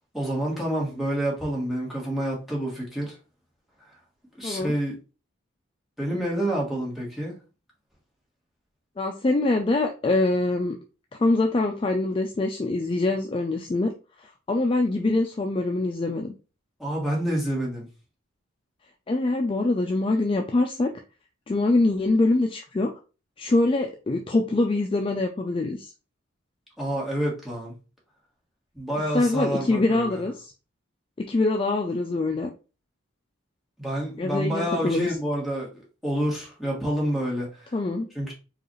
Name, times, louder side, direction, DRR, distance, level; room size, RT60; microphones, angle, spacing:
voice 1, 0.1-3.2 4.4-4.9 6.0-7.3 16.8-17.9 26.8-27.7 28.7-30.2 33.8-37.7 38.1-38.3, right 1 dB, ahead, 1.3 m, -28 dB
voice 2, 4.4-4.7 9.0-10.7 11.2-13.9 14.2-16.3 19.1-20.9 21.5-22.9 23.4-25.9 29.1-30.5 31.2-32.5 34.2-35.1 37.7-38.1, left 2 dB, 25° left, 0.3 m, -24 dB
4.7 x 2.4 x 3.1 m
head